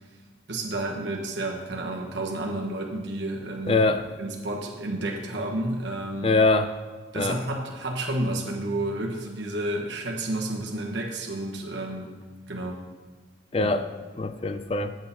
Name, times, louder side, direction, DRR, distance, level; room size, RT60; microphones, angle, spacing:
voice 1, 0.5-3.8 4.2-6.3 7.1-12.2 12.5-12.8 13.6-13.7, right 1 dB, 75° right, 0 dB, 1.3 m, -31 dB
voice 2, 3.7-4.1 6.2-6.7 7.2-7.4 13.5-13.9 14.2-15.0, left 3 dB, 30° left, 10 dB, 0.4 m, -23 dB
9.2 x 7.7 x 4.2 m, 1.4 s
head